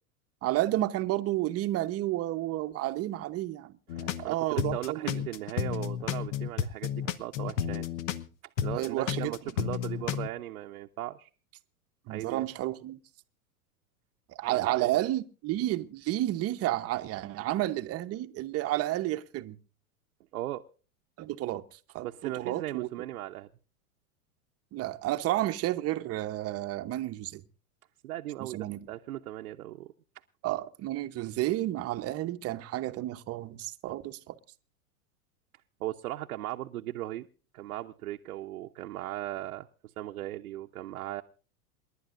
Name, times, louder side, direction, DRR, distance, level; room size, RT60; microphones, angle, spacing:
voice 1, 0.4-5.2 8.7-9.3 12.1-13.0 14.3-19.6 21.2-22.9 24.7-27.4 28.4-28.9 30.4-34.4, right 15 dB, 35° right, 0.9 m, -31 dB
sound 1, 3.9-4.3 4.6-8.3 8.6-10.3, left 9 dB, 60° left, 1.1 m, -32 dB
voice 2, 3.9-7.9 8.6-11.3 12.1-12.4 14.5-15.0 20.3-20.6 22.0-23.5 28.0-29.9 35.8-37.3 37.5-39.7 40.0-41.2, right 15 dB, 75° right, 0.8 m, -37 dB
28.0 x 11.5 x 2.5 m
hypercardioid pair, 105°, 44 cm